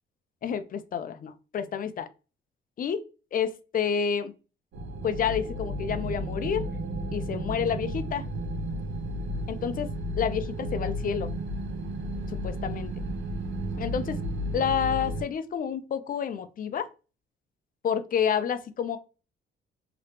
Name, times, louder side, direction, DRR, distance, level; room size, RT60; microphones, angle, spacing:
voice 1, 0.4-2.1 2.8-3.0 3.3-4.3 5.0-6.6 7.1-8.2 9.5-9.9 10.2-11.3 12.4-12.9 13.8-14.2 14.5-16.9 17.8-19.0, left 7 dB, 45° left, 11 dB, 0.5 m, -29 dB
sound 1, 4.7-15.2, right 1 dB, 70° right, 0.8 m, -33 dB
2.9 x 2.9 x 3.2 m, 0.34 s
cardioid pair, 90°, 20 cm